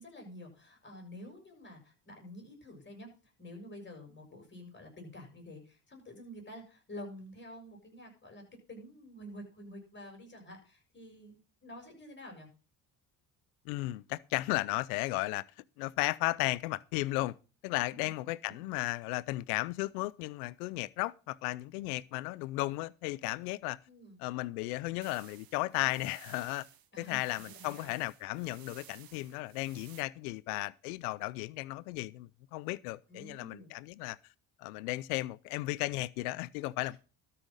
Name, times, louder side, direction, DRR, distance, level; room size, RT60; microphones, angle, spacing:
voice 1, 0.0-12.5 18.5-18.6 23.9-24.2 26.9-27.9 33.1-33.7, left 1 dB, 25° left, 7.0 m, -49 dB
voice 2, 13.7-15.5 15.8-17.3 17.6-23.8 24.2-26.7 27.0-34.2 34.6-37.0, left 20 dB, 85° left, 0.6 m, -35 dB
sound 1, 25.0-30.0, right 11 dB, 55° right, 1.4 m, -56 dB
13.0 x 5.7 x 6.4 m
supercardioid pair, 70°, 43 cm